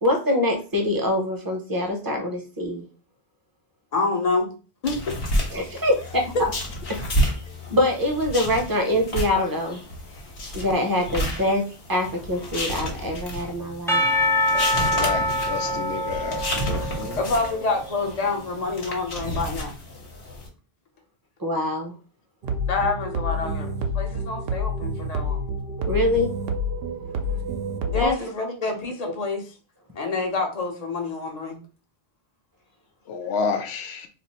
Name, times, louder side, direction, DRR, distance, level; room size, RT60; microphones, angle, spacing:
voice 1, 0.0-2.8 5.5-6.2 7.7-9.8 10.5-11.6 11.9-14.0 21.4-21.9 25.9-26.3 27.9-28.3 29.1-29.2, left 1 dB, 20° right, 2 dB, 0.7 m, -24 dB
voice 2, 3.9-4.5 4.8-5.1 6.3-6.5 17.2-19.7 22.7-25.4 27.1-27.4 27.9-29.4 29.9-31.6, left 3 dB, 40° left, 3 dB, 0.8 m, -27 dB
sound 1, 4.8-20.5, equal, 65° left, 1.2 m, -31 dB
Percussion / Church bell, 13.9-17.8, left 1 dB, 5° left, 0.3 m, -25 dB
voice 3, 14.9-16.4 16.7-17.2 33.1-34.1, left 5 dB, 85° left, 5 dB, 0.9 m, -29 dB
sound 2, 22.4-28.1, equal, 70° right, 0.8 m, -28 dB
2.5 x 2.5 x 4.2 m, 0.35 s
omnidirectional pair, 1.1 m